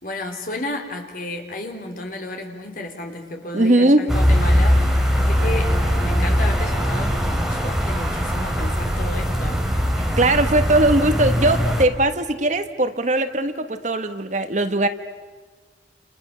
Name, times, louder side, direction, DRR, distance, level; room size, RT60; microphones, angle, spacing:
voice 1, 0.0-9.6, left 1 dB, 50° left, 3 dB, 4.0 m, -32 dB
voice 2, 3.5-4.0 10.0-14.9, right 1 dB, 40° right, 9 dB, 1.3 m, -19 dB
sound 1, 4.1-11.8, equal, 5° right, 3.1 m, -20 dB
Piano, 5.4-7.9, right 1 dB, 75° right, 5.2 m, -38 dB
29.5 x 29.0 x 6.9 m, 1.4 s
head